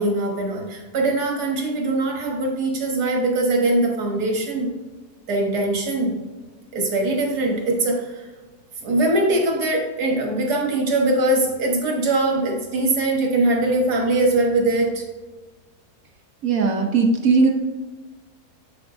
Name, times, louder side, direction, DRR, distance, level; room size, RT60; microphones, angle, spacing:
voice 1, 0.0-4.7 5.3-6.1 6.7-8.3 8.8-15.0, right 2 dB, 80° right, 0 dB, 2.0 m, -22 dB
voice 2, 16.4-17.5, right 4 dB, 65° right, 3 dB, 1.2 m, -18 dB
7.5 x 6.9 x 2.6 m, 1.2 s
omnidirectional pair, 1.7 m